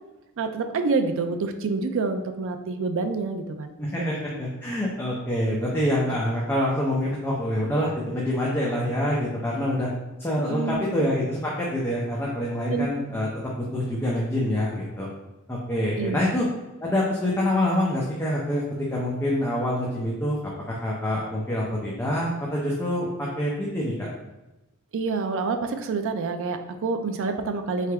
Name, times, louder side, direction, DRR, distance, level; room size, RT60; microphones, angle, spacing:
voice 1, 0.4-3.7 4.0-4.4 10.5-10.9 12.7-12.9 16.0-16.3 24.9-27.9, right 4 dB, 65° right, 6 dB, 0.4 m, -27 dB
voice 2, 3.8-9.9 10.2-15.1 15.5-16.5 16.8-20.4 20.7-24.1, left 1 dB, 10° left, -5 dB, 0.6 m, -26 dB
3.7 x 3.3 x 3.4 m, 1.0 s
head